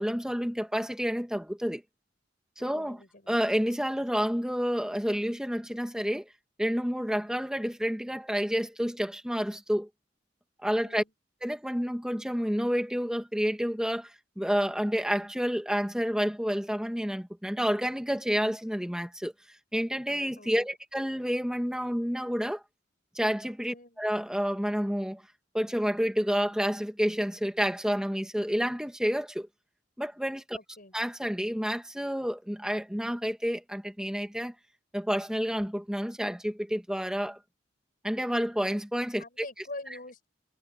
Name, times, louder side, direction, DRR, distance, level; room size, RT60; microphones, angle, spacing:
voice 1, 0.0-1.8 2.6-3.0 3.3-6.3 6.6-9.9 10.6-11.0 11.4-19.3 19.7-22.6 23.2-25.2 25.5-29.5 30.0-30.6 30.9-34.6 34.9-37.4 38.0-39.2, equal, 5° right, 2.1 m, -29 dB
voice 2, 2.6-3.3 10.7-11.1 20.4-20.7 23.7-24.0 30.5-30.9 39.2-40.3, left 2 dB, 50° left, 6.8 m, -45 dB
head